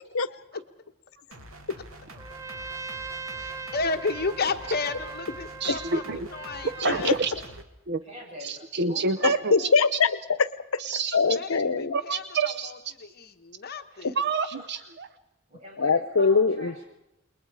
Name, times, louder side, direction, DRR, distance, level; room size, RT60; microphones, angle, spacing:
sound 1, 1.3-7.6, right 1 dB, 80° right, 2.2 m, -46 dB
Trumpet, 2.1-7.2, right 4 dB, 15° right, 0.7 m, -40 dB
voice 1, 3.4-7.2 11.3-14.2, left 4 dB, 50° left, 7 dB, 1.2 m, -33 dB
voice 2, 5.6-6.3 6.8-7.3 7.9-8.0 8.4-9.7 10.8-11.2 11.9-12.7 14.2-15.1, right 4 dB, 55° right, 11 dB, 0.7 m, -28 dB
voice 3, 6.8-7.1 9.2-10.8 11.1-11.9 14.0-14.1 15.8-16.7, left 5 dB, 80° left, 15 dB, 0.9 m, -23 dB
voice 4, 8.0-9.3 15.5-16.8, equal, 35° right, -2 dB, 7.6 m, -44 dB
28.5 x 21.5 x 4.9 m, 0.91 s
head